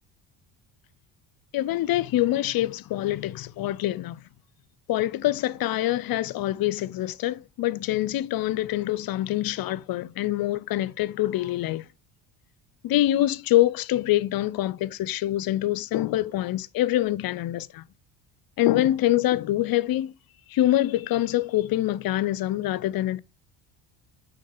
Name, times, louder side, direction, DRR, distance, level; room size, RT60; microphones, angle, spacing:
voice 1, 1.5-4.2 4.9-11.8 12.8-17.8 18.6-20.1 20.5-23.2, left 14 dB, 50° left, 0.5 m, -25 dB
8.3 x 3.7 x 3.8 m
supercardioid pair, 75°, 48 cm